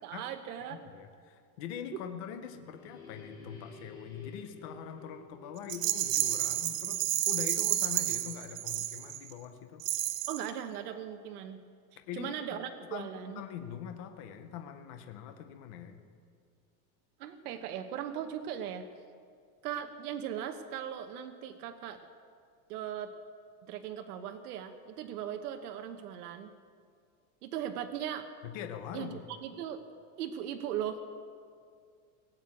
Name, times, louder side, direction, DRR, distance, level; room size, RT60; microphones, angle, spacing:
voice 1, 0.0-0.9 1.9-2.0 10.3-11.6 12.1-13.4 17.2-18.9 19.6-22.0 22.7-23.1 23.7-26.5 27.4-28.3 28.9-29.8 30.2-31.0, right 9 dB, 75° right, 6 dB, 1.1 m, -38 dB
voice 2, 0.7-9.8 12.1-16.0 28.4-29.3, left 8 dB, 25° left, 7 dB, 0.4 m, -43 dB
sound 1, 2.2-8.7, left 3 dB, 10° left, 4.0 m, -52 dB
Rattle, 5.7-9.3 9.8-10.5, right 14 dB, 55° right, 0.8 m, -31 dB
18.5 x 7.7 x 8.4 m, 2.2 s
supercardioid pair, 180°, 46 cm